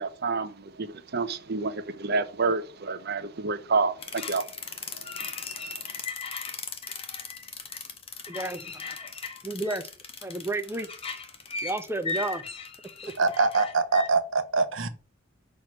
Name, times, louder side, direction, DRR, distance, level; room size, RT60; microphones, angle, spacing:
voice 1, 0.0-5.8, right 4 dB, 55° right, 0.7 m, -30 dB
sound 1, 4.0-14.1, left 4 dB, 30° left, 1.0 m, -37 dB
voice 2, 8.3-9.0 9.4-9.9 10.2-10.9 11.6-12.4 13.0-13.1, right 2 dB, 10° right, 0.6 m, -32 dB
voice 3, 13.2-14.9, right 4 dB, 75° right, 0.9 m, -24 dB
6.3 x 3.1 x 5.9 m
head